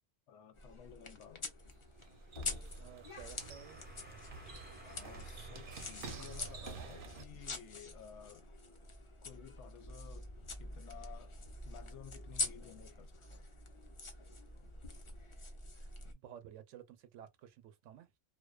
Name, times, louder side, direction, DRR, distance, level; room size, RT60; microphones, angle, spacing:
voice 1, 0.3-1.5 4.8-8.5 9.2-13.5 14.2-14.3, left 9 dB, 75° left, 0.9 m, -55 dB
sound 1, 0.5-16.1, left 3 dB, 45° left, 0.4 m, -46 dB
sound 2, 1.6-7.2, right 5 dB, 55° right, 0.7 m, -50 dB
sound 3, 2.5-7.2, right 1 dB, 10° right, 0.5 m, -58 dB
voice 2, 2.8-3.8 15.7-18.1, right 10 dB, 85° right, 0.9 m, -54 dB
2.5 x 2.1 x 2.3 m
omnidirectional pair, 1.2 m